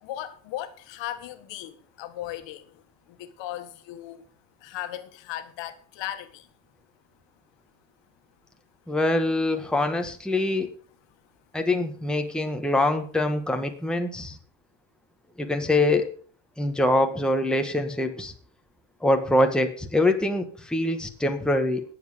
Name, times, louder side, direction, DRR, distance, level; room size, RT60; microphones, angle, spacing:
voice 1, 0.0-4.2 4.6-6.5, left 13 dB, 75° left, 1.7 m, -37 dB
voice 2, 8.9-10.7 11.5-14.4 15.4-16.1 16.6-18.3 19.0-21.8, left 1 dB, ahead, 1.4 m, -24 dB
19.5 x 7.8 x 5.0 m
cardioid pair, 160°, 45 cm